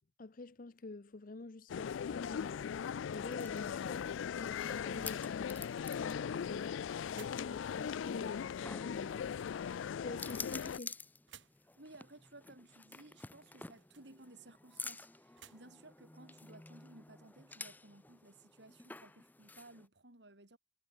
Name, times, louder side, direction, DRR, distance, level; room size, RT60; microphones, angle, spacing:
voice 1, 0.2-2.7 3.1-6.8 7.1-11.0, left 3 dB, 45° left, 0.7 m, -48 dB
sound 1, 1.7-10.8, left 7 dB, 80° left, 0.3 m, -39 dB
sound 2, 2.9-19.9, left 3 dB, 10° left, 0.5 m, -51 dB
sound 3, 4.6-17.4, right 9 dB, 75° right, 5.6 m, -66 dB
voice 2, 11.8-20.6, right 2 dB, 60° right, 3.3 m, -58 dB
head